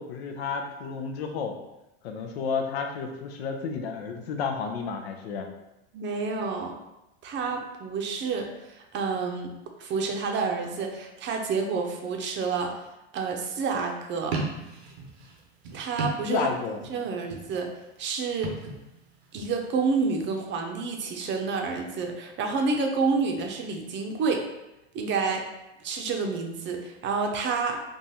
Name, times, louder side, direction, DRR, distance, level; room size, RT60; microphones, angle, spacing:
voice 1, 0.0-1.6 2.0-5.5 16.3-16.8, left 5 dB, 80° left, 4 dB, 0.6 m, -31 dB
voice 2, 5.9-6.8 7.2-9.5 9.8-12.8 13.1-14.4 15.7-16.5 16.9-17.7 18.0-18.6 19.3-24.5 24.9-25.5 25.8-27.8, right 4 dB, 35° right, 3 dB, 0.6 m, -29 dB
sound 1, 14.2-16.8 17.1-17.7 18.3-19.5, right 3 dB, 90° right, 0.8 m, -35 dB
3.8 x 2.4 x 2.7 m, 0.93 s
supercardioid pair, 105°, 31 cm